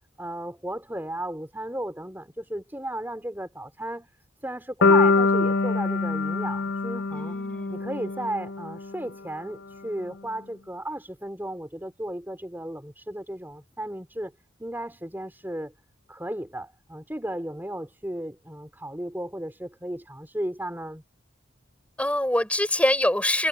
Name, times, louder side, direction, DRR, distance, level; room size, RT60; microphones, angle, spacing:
voice 1, 0.2-4.1 4.4-7.4 7.7-14.3 14.6-15.7 16.1-21.0, right 1 dB, 10° right, 3.8 m, -34 dB
sound 1, 4.8-8.9, left 3 dB, 60° left, 0.6 m, -23 dB
voice 2, 7.1-8.1 22.0-23.5, left 1 dB, 5° left, 4.0 m, -25 dB
head